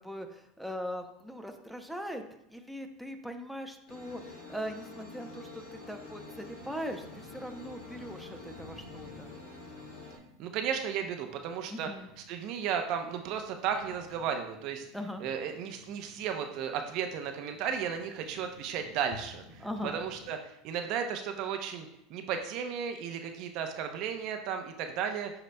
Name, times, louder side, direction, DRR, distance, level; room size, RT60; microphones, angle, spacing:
voice 1, 0.0-2.2 2.5-9.3 11.7-12.1 14.9-15.2 19.6-20.0, equal, ahead, 4 dB, 0.7 m, -40 dB
sound 1, 3.9-10.2, left 3 dB, 85° left, 2.3 m, -47 dB
sound 2, 6.6-20.3, left 3 dB, 40° left, 1.6 m, -55 dB
voice 2, 10.4-11.9 12.3-14.9 15.2-25.3, right 7 dB, 60° right, 6 dB, 0.7 m, -34 dB
11.0 x 3.9 x 2.2 m, 0.81 s
supercardioid pair, 105°, 0 cm